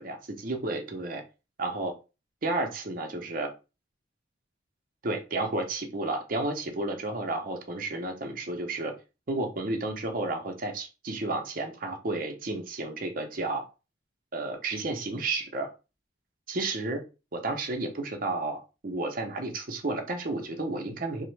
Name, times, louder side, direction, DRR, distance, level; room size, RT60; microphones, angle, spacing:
voice 1, 0.0-1.2 1.6-1.9 2.4-3.5 5.0-8.9 9.3-13.7 14.3-15.7 16.5-17.0 17.3-21.3, right 2 dB, 45° right, 4 dB, 0.6 m, -32 dB
3.1 x 2.0 x 3.1 m, 0.30 s
head